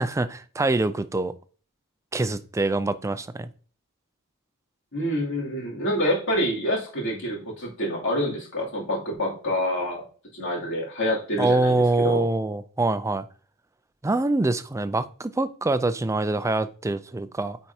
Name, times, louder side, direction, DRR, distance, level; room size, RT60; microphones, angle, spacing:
voice 1, 0.0-1.3 2.1-3.5 11.4-13.2 14.0-17.6, right 2 dB, 15° right, 0.4 m, -24 dB
voice 2, 4.9-10.0 10.3-12.2, equal, 55° left, 2.7 m, -27 dB
8.7 x 4.5 x 2.7 m
head